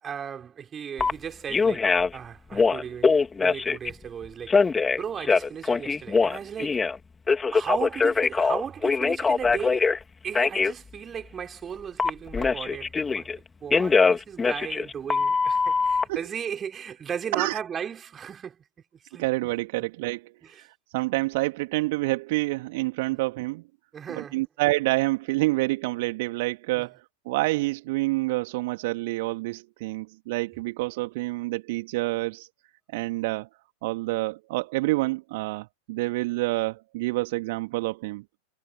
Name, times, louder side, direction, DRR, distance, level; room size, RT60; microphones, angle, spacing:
voice 1, 0.0-4.6 5.0-6.8 7.5-9.9 10.2-13.3 13.6-18.6 19.1-19.2 20.4-20.6 23.9-24.4 26.8-26.9, right 7 dB, 20° right, 5.5 m, -36 dB
Telephone, 1.0-1.1 1.5-2.2 2.5-3.9 4.5-7.0 7.3-10.0 10.3-10.7 12.0-13.4 13.7-16.0, left 4 dB, 15° left, 3.1 m, -22 dB
voice 2, 19.2-23.6 24.1-32.5 32.9-33.5 33.8-38.2, right 21 dB, 50° right, 2.1 m, -28 dB
figure-of-eight pair, 90°, 0 cm